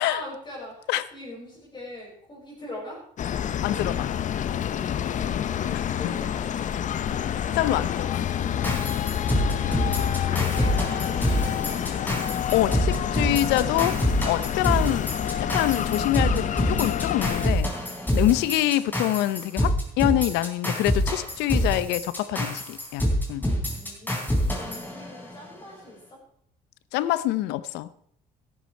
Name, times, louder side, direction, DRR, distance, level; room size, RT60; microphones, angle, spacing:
voice 1, 0.0-3.0 5.6-6.9 9.6-12.1 23.6-26.2, left 1 dB, 25° left, -5 dB, 5.6 m, -41 dB
sound 1, 3.2-17.5, left 9 dB, 45° left, 0.8 m, -28 dB
voice 2, 3.6-4.1 5.7-5.8 7.1-8.2 12.5-14.0 14.2-17.7 18.1-23.5 26.9-27.9, left 14 dB, 90° left, 17 dB, 0.7 m, -25 dB
sound 2, 8.6-25.5, equal, 10° left, 4.0 m, -26 dB
13.5 x 12.0 x 4.5 m, 0.66 s
cardioid pair, 110°, 17 cm